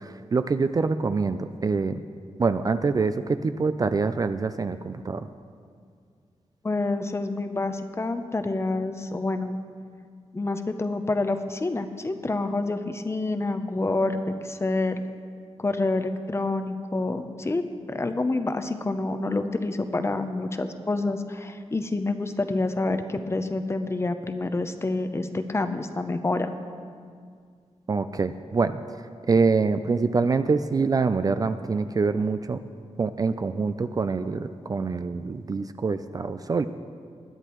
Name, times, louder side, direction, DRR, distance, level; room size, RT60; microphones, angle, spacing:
voice 1, 0.0-2.0 2.4-5.3 27.9-28.8 29.3-32.6 33.0-36.7, right 4 dB, 30° right, 10 dB, 0.3 m, -25 dB
voice 2, 6.6-9.6 10.3-15.0 15.6-26.6, left 2 dB, 25° left, 8 dB, 0.6 m, -28 dB
21.5 x 9.8 x 3.0 m, 2.2 s
wide cardioid pair, 150°, 12 cm